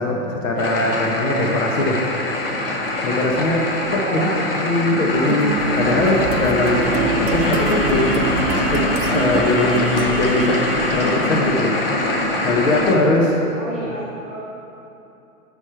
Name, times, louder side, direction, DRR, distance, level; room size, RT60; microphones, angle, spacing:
voice 1, 0.0-2.0 3.0-4.3 4.5-8.4 8.7-10.6 10.9-11.7 12.4-13.4, left 2 dB, 60° left, 0 dB, 0.9 m, -21 dB
sound 1, 0.6-12.9, left 2 dB, 40° left, 0.5 m, -23 dB
voice 2, 4.0-4.4 13.5-14.5, right 1 dB, ahead, -16 dB, 1.2 m, -31 dB
sound 2, 5.3-10.7, right 7 dB, 65° right, 0.5 m, -28 dB
sound 3, 5.5-11.4, equal, 25° right, 0.8 m, -27 dB
5.2 x 4.9 x 4.3 m, 2.8 s
hypercardioid pair, 175°, 46 cm